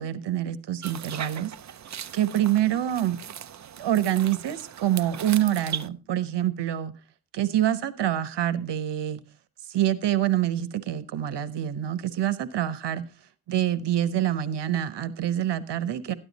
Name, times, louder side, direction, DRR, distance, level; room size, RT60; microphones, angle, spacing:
voice 1, 0.0-1.5 2.1-3.2 3.8-6.9 7.3-9.2 9.7-13.0 13.5-16.1, right 11 dB, 80° right, 1.1 m, -26 dB
sound 1, 0.8-5.9, right 9 dB, 45° right, 0.6 m, -39 dB
13.0 x 11.0 x 4.1 m
wide cardioid pair, 150°, 41 cm